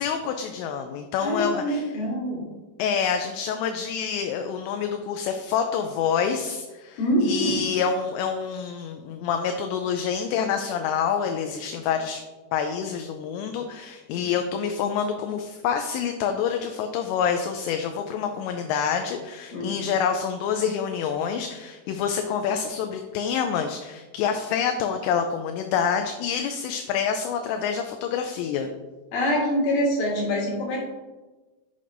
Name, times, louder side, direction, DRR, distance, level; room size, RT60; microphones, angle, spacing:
voice 1, 0.0-1.9 2.8-12.2 12.5-28.7, left 7 dB, 85° left, 5 dB, 2.7 m, -27 dB
voice 2, 1.2-2.4 7.0-7.5 19.5-19.8 29.1-30.8, equal, 60° left, -4 dB, 3.3 m, -25 dB
8.4 x 6.9 x 2.6 m, 1.2 s
omnidirectional pair, 5.3 m